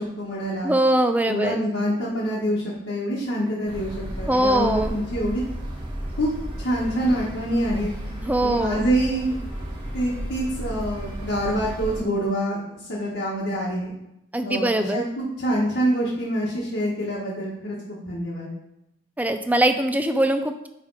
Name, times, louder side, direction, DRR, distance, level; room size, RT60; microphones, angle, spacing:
voice 1, 0.0-0.7 1.3-5.4 6.2-6.3 6.6-7.9 8.4-9.4 9.9-13.9 14.4-18.5, equal, 65° left, -6 dB, 1.4 m, -26 dB
voice 2, 0.6-1.6 4.3-5.0 8.2-8.9 14.3-15.0 19.2-20.7, right 1 dB, 10° right, 7 dB, 0.4 m, -22 dB
sound 1, 3.7-12.0, equal, 25° right, 1.5 m, -33 dB
10.0 x 3.4 x 4.7 m, 0.87 s
head